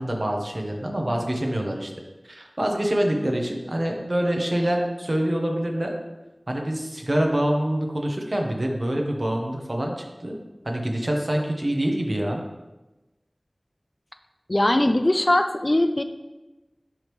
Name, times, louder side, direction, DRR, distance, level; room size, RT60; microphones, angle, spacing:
voice 1, 0.0-1.9 2.3-5.9 6.5-10.4 10.6-12.4, right 1 dB, 50° right, 1 dB, 1.0 m, -25 dB
voice 2, 14.5-16.0, left 1 dB, 40° left, 8 dB, 0.3 m, -20 dB
10.5 x 3.5 x 3.2 m, 1.1 s
wide cardioid pair, 45°, 0 cm